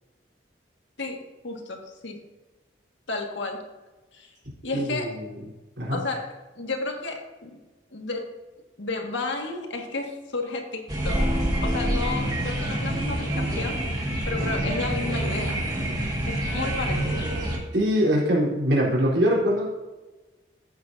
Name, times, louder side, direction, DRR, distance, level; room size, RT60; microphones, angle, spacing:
voice 1, 1.0-2.2 3.1-3.6 4.1-4.3 4.6-5.3 5.9-7.5 7.9-8.3 8.8-11.2 11.6-15.6 16.3-17.3, left 3 dB, 80° left, 2 dB, 1.8 m, -32 dB
voice 2, 4.7-5.3 5.8-6.0 17.7-19.6, equal, 80° right, -4 dB, 3.8 m, -23 dB
sound 1, 10.9-17.6, right 1 dB, 20° right, 1.9 m, -26 dB
14.0 x 8.9 x 2.7 m, 1.2 s
head